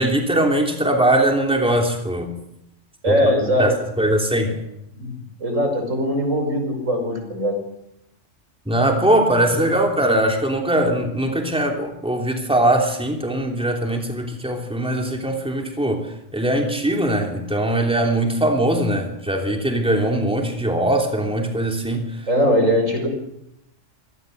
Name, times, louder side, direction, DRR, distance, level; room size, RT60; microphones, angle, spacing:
voice 1, 0.0-2.3 3.1-3.2 3.6-4.6 8.7-16.0 16.3-22.0, right 1 dB, 5° right, 2 dB, 3.1 m, -21 dB
voice 2, 3.0-3.7 4.9-7.6 22.3-23.1, equal, 80° right, 4 dB, 5.9 m, -21 dB
25.0 x 18.0 x 6.8 m, 0.83 s
omnidirectional pair, 1.3 m